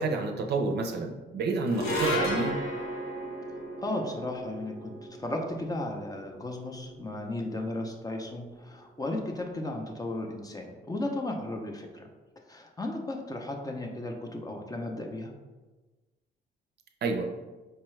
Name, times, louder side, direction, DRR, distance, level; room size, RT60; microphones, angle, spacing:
voice 1, 0.0-2.6 17.0-17.2, right 3 dB, 55° right, 3 dB, 0.5 m, -29 dB
sound 1, 1.7-8.1, equal, 85° left, 0.9 m, -35 dB
voice 2, 3.8-4.9 5.2-12.1 12.5-15.3, left 1 dB, 20° left, 2 dB, 0.5 m, -35 dB
4.5 x 2.3 x 3.1 m, 1.2 s
cardioid pair, 90°, 20 cm